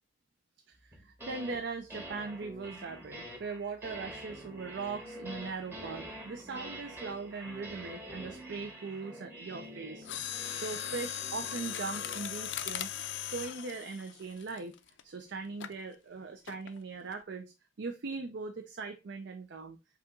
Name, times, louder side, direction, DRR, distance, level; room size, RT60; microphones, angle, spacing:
voice 1, 0.7-14.7 15.0-19.8, right 4 dB, 60° right, 0.5 m, -40 dB
sound 1, 0.9-1.6 1.9-12.3, right 1 dB, 10° right, 1.0 m, -46 dB
Mechanisms, 10.0-15.0 15.6-15.8 16.5-16.8 17.1-17.2, left 10 dB, 65° left, 0.5 m, -39 dB
5.5 x 2.4 x 3.7 m
head